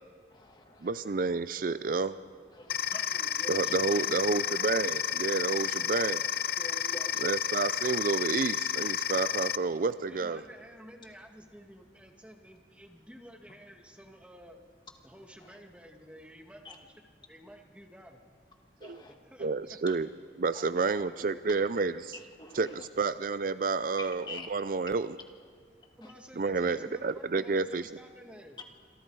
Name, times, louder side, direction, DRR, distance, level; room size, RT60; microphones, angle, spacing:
voice 1, 0.3-0.9 2.5-3.6 6.6-7.3 16.7-16.8 18.8-19.1 19.9-20.0 21.5-21.6 22.1-22.9 24.0-24.5 26.0-26.1, left 2 dB, 25° left, 3 dB, 2.1 m, -46 dB
voice 2, 0.8-2.2 3.5-6.2 7.2-10.4 18.8-19.0 19.4-20.1 20.4-22.2 22.5-25.2 26.4-27.9, right 4 dB, 50° right, 14 dB, 0.5 m, -30 dB
sound 1, 2.7-9.6, left 9 dB, 60° left, 0.6 m, -31 dB
voice 3, 3.6-4.2 10.1-14.6 15.0-18.2 19.2-19.8 20.5-21.4 26.0-28.6, equal, 5° right, 3 dB, 1.8 m, -52 dB
27.0 x 24.5 x 4.8 m, 2.1 s
head